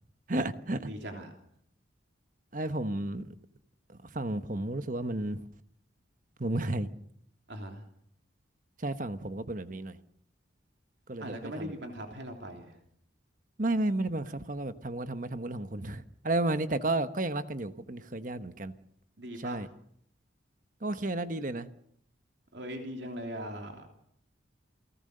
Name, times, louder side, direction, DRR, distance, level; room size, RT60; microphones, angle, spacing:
voice 1, 0.3-0.8 2.5-3.2 3.9-5.4 6.4-6.9 8.8-10.0 11.1-11.7 13.6-18.7 19.4-19.7 20.8-21.7, right 2 dB, 40° right, 1.1 m, -32 dB
voice 2, 0.8-1.3 7.5-7.8 11.2-12.8 19.2-19.7 22.5-23.9, equal, 60° right, 3.3 m, -40 dB
29.0 x 18.5 x 6.7 m
head